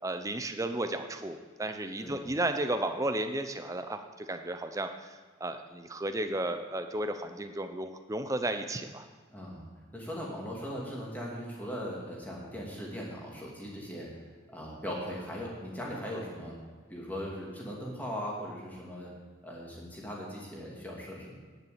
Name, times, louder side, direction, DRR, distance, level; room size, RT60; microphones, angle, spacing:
voice 1, 0.0-9.1, right 1 dB, 15° right, 7 dB, 0.6 m, -33 dB
voice 2, 9.3-16.5 16.9-19.1 19.4-21.4, equal, 10° left, -4 dB, 2.4 m, -39 dB
10.5 x 7.0 x 8.3 m, 1.4 s
head